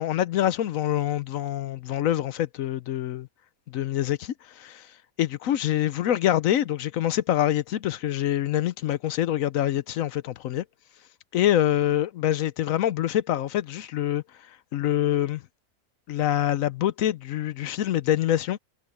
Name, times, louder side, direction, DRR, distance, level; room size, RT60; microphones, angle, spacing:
voice 1, 0.0-3.3 3.7-4.9 5.2-10.6 11.3-15.4 16.1-18.6, left 12 dB, 70° left, 1.0 m, -25 dB
omnidirectional pair, 1.5 m